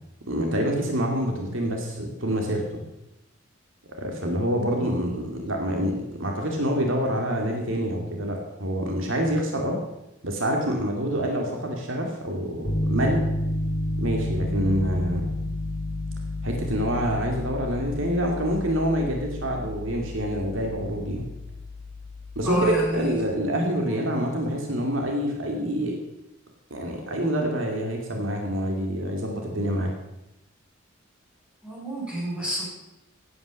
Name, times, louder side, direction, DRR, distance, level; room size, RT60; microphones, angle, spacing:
voice 1, 0.3-2.8 4.0-9.8 10.2-13.3 14.0-15.3 16.4-21.3 22.4-26.0 26.7-29.9, equal, 70° right, 1 dB, 2.6 m, -26 dB
Piano, 12.6-22.9, left 1 dB, 25° left, 2.5 m, -31 dB
voice 2, 22.4-23.2 23.9-24.0 31.6-32.6, right 1 dB, 5° right, -6 dB, 7.2 m, -28 dB
16.5 x 9.6 x 6.6 m, 0.92 s
head